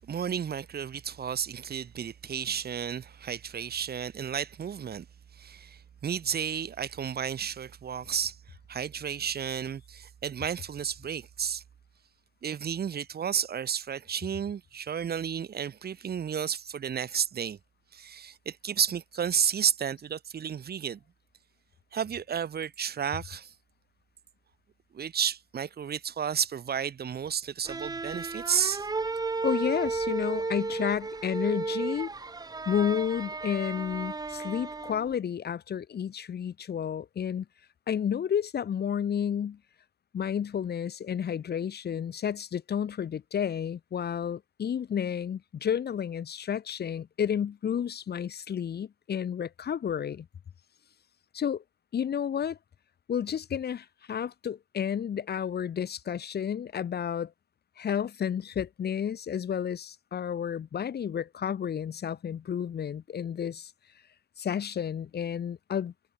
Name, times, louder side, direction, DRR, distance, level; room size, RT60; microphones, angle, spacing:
voice 1, 0.0-5.1 5.3-8.4 8.7-11.6 12.4-17.6 17.9-21.0 21.9-23.5 24.9-28.9, right 8 dB, 55° right, 1.2 m, -32 dB
sound 1, 27.6-35.1, right 3 dB, 20° right, 0.6 m, -33 dB
voice 2, 29.4-32.1 32.7-37.4 37.9-39.6 40.1-50.3 51.3-51.6 51.9-52.6 53.1-57.3 57.8-63.7 64.4-65.9, left 8 dB, 60° left, 1.2 m, -31 dB
supercardioid pair, 50°, 19 cm